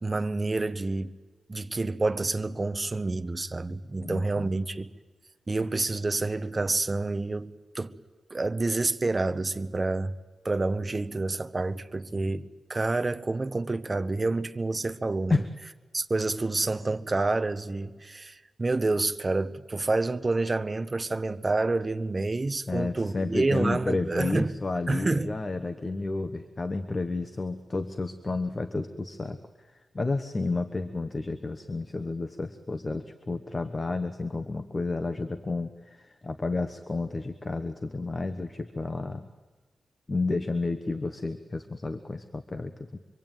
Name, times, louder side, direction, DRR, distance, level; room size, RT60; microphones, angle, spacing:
voice 1, 0.0-1.1 1.5-4.9 5.5-8.0 8.3-10.2 10.4-15.4 15.9-24.5 24.9-25.4, right 3 dB, 25° right, 1.0 m, -28 dB
voice 2, 4.0-4.5 12.2-12.4 15.3-15.5 22.7-29.4 29.9-39.3 40.1-43.0, left 3 dB, 25° left, 1.1 m, -31 dB
25.5 x 24.0 x 9.1 m
wide cardioid pair, 150°, 0 cm